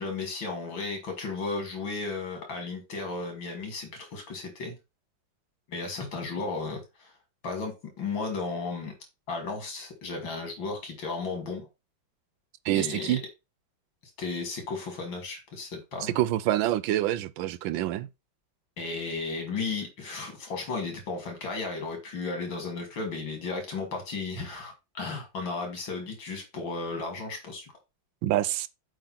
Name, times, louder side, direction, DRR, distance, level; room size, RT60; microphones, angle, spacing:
voice 1, 0.0-4.8 5.7-7.1 7.4-8.9 9.3-11.7 12.7-13.2 14.2-16.1 18.8-27.7, left 4 dB, 85° left, 3.3 m, -34 dB
voice 2, 12.6-13.2 16.0-18.1 28.2-28.7, right 14 dB, 90° right, 1.4 m, -26 dB
7.8 x 3.7 x 5.8 m
omnidirectional pair, 2.0 m